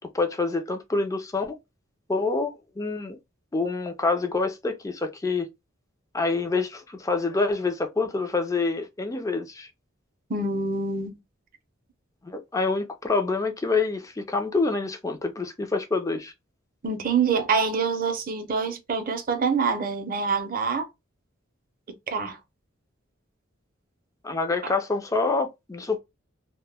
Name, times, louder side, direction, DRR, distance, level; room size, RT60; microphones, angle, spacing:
voice 1, 0.1-1.5 2.1-3.2 3.5-5.5 6.1-9.7 12.2-16.3 24.2-26.0, left 3 dB, 15° left, 0.4 m, -26 dB
voice 2, 10.3-11.2 16.8-20.9 22.1-22.4, right 5 dB, 45° right, 0.6 m, -26 dB
2.1 x 2.1 x 3.3 m
head